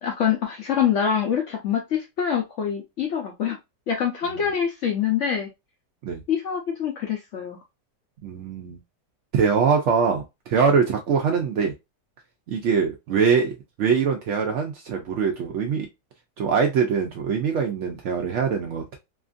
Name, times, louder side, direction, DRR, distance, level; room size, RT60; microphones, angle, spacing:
voice 1, 0.0-3.6 3.9-5.5 6.3-7.6, left 8 dB, 70° left, 0.7 m, -25 dB
voice 2, 8.2-8.8 9.3-11.7 12.5-15.9 16.4-19.0, right 6 dB, 85° right, 0.6 m, -23 dB
2.9 x 2.5 x 2.4 m
omnidirectional pair, 1.8 m